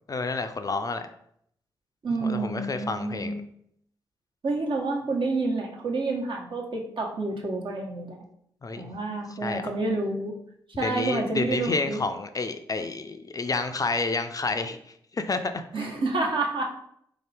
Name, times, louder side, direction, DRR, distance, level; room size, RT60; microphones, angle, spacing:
voice 1, 0.1-1.0 2.2-3.3 8.6-8.9 9.3-9.7 10.8-14.8 15.1-15.6, left 3 dB, 35° left, 8 dB, 0.4 m, -29 dB
voice 2, 2.0-3.4 4.4-8.2 8.8-10.3 10.8-12.0 15.7-16.6, right 3 dB, 55° right, -1 dB, 1.2 m, -29 dB
3.7 x 2.9 x 3.4 m, 0.69 s
supercardioid pair, 45°, 10 cm